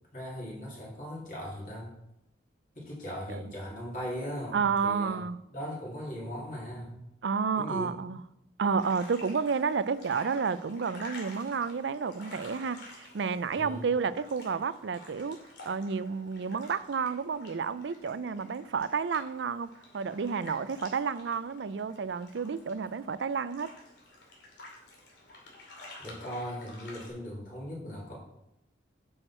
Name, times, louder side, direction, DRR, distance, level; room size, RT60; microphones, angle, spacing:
voice 1, 0.1-2.0 2.7-5.2 5.5-7.1 7.6-8.0 13.6-13.9 26.0-28.2, equal, 45° left, 3.2 m, -39 dB
voice 2, 4.5-5.4 7.2-8.2 8.6-23.8, right 5 dB, 80° right, 0.4 m, -31 dB
sound 1, 8.8-27.1, left 2 dB, 75° left, 2.6 m, -51 dB
9.0 x 6.4 x 4.4 m
head